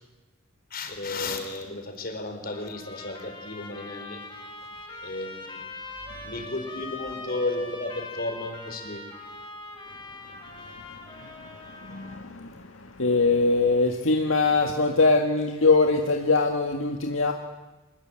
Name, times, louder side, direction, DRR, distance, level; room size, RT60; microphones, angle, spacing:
voice 1, 0.7-4.2 5.0-5.6 6.2-9.0, left 2 dB, 45° left, 6 dB, 4.2 m, -33 dB
Trumpet, 2.5-12.2, left 3 dB, 25° left, 6.1 m, -42 dB
voice 2, 11.2-17.3, left 3 dB, 70° left, 3 dB, 1.8 m, -23 dB
26.0 x 21.0 x 8.9 m, 1.1 s
head